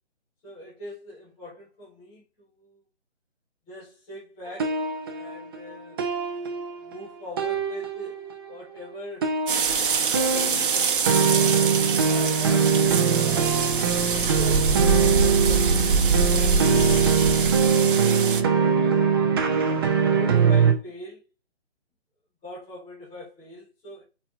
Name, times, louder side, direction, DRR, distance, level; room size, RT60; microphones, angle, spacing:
voice 1, 0.4-2.8 3.7-6.0 6.8-9.4 10.3-12.8 13.2-13.9 14.2-19.1 19.6-21.2 22.4-24.0, left 1 dB, 10° left, 1.5 m, -43 dB
sound 1, 4.5-7.1 7.4-8.4 9.2-20.7, right 6 dB, 20° right, 0.7 m, -23 dB
sound 2, 9.5-18.4, right 5 dB, 50° right, 1.1 m, -24 dB
Screech, 12.5-17.5 18.2-18.3, left 4 dB, 60° left, 2.7 m, -43 dB
8.3 x 4.6 x 2.6 m
hypercardioid pair, 155°, 34 cm